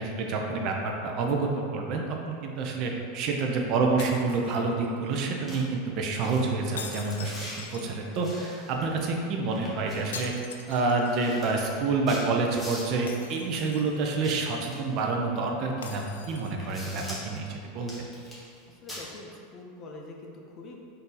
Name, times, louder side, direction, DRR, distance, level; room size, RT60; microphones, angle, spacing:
voice 1, 0.0-10.3 10.7-17.5 17.7-17.9, right 3 dB, 50° right, 1 dB, 0.6 m, -28 dB
sound 1, 4.0-5.1 6.8-8.3 10.1-11.3 11.7-11.8 13.1-14.1 15.8-16.8, left 6 dB, 90° left, 0.3 m, -43 dB
sound 2, 5.1-5.2 5.5-5.6 6.2-6.4 6.8-7.6 8.2-9.2 9.5-10.3 10.7-10.8 11.0-13.1 14.0-15.1 15.8-15.9 16.3-17.4 17.8-18.6 18.9-19.0, left 1 dB, 10° left, 1.2 m, -43 dB
voice 2, 18.7-20.8, left 2 dB, 35° left, 0 dB, 0.6 m, -45 dB
4.0 x 2.7 x 3.8 m, 2.4 s
hypercardioid pair, 110°, 0 cm